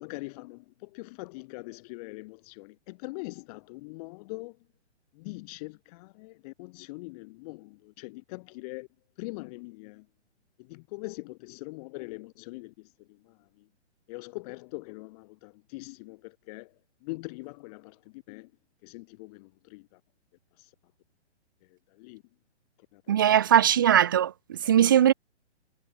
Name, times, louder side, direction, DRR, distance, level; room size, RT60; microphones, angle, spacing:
voice 1, 0.0-4.6 5.1-8.9 9.2-10.1 10.6-13.7 14.1-18.5 18.8-20.0 20.6-20.7 21.6-22.2 22.9-23.4 24.8-25.0, left 25 dB, 35° left, 6.0 m, -42 dB
voice 2, 23.1-25.1, right 10 dB, 20° right, 0.4 m, -20 dB
hypercardioid pair, 140°, 34 cm